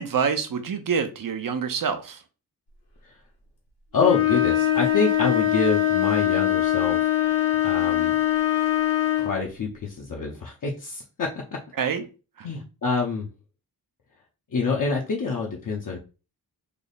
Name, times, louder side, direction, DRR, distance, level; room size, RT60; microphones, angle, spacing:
voice 1, 0.0-2.2 11.8-12.0 12.4-12.5, right 6 dB, 60° right, 0.6 m, -26 dB
voice 2, 3.9-8.2 9.2-11.3 12.4-13.3 14.5-16.0, left 4 dB, 55° left, 0.7 m, -27 dB
sound 1, 4.0-9.4, left 12 dB, 85° left, 1.5 m, -22 dB
3.3 x 2.0 x 3.9 m
wide cardioid pair, 120°, 39 cm